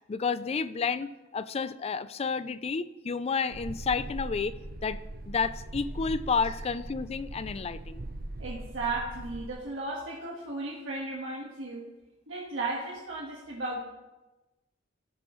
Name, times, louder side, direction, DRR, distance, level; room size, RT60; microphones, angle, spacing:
voice 1, 0.1-4.5 4.8-5.0 5.3-8.0, left 5 dB, 30° left, 14 dB, 0.3 m, -30 dB
sound 1, 3.5-9.5, right 1 dB, 50° right, 0.6 m, -40 dB
voice 2, 8.4-11.8 12.3-13.8, right 2 dB, 70° right, -4 dB, 1.5 m, -35 dB
15.0 x 7.0 x 3.1 m, 1.1 s
head